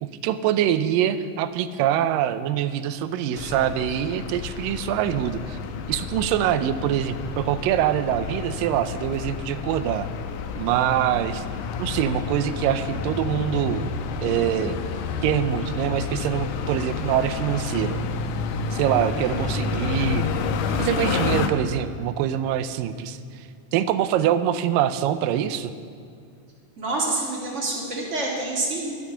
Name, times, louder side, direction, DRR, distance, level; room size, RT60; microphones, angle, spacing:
voice 1, 0.0-5.6 5.9-10.1 10.6-11.4 11.8-13.8 14.2-14.8 15.2-18.0 18.7-20.3 20.8-25.7, right 10 dB, 90° right, 12 dB, 2.3 m, -24 dB
sound 1, 3.4-21.5, left 5 dB, 75° left, 2.1 m, -30 dB
voice 2, 26.8-29.0, right 2 dB, 25° right, -3 dB, 2.1 m, -27 dB
12.0 x 11.0 x 5.6 m, 2.4 s
omnidirectional pair, 3.9 m